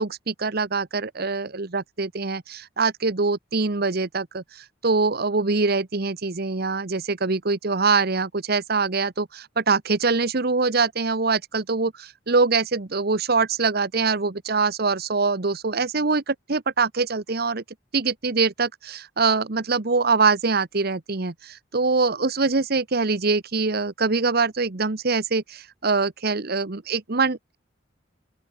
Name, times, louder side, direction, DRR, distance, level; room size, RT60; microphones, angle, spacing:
voice 1, 0.0-17.6 17.9-27.6, right 4 dB, 55° right, 1.2 m, -24 dB
open air
head